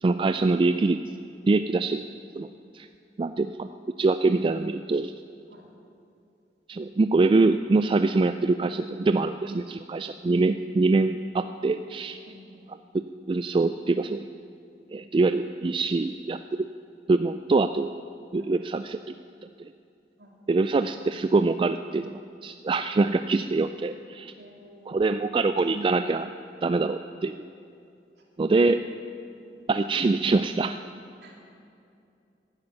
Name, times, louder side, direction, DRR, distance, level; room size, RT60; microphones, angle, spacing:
voice 1, 0.0-1.0 1.5-2.0 2.4-2.9 3.2-3.7 4.0-5.1 6.7-12.2 13.3-14.3 14.9-16.6 17.1-17.9 18.3-19.1 19.6-19.7 20.5-24.3 24.9-26.3 26.6-27.5 28.4-28.8 29.7-30.8, right 3 dB, 30° right, 10 dB, 0.3 m, -24 dB
voice 2, 12.3-12.7 18.3-18.5 20.2-20.3 24.4-25.1 28.2-28.7 31.2-31.3, equal, 65° right, -2 dB, 3.2 m, -49 dB
12.0 x 11.5 x 9.3 m, 2.5 s
head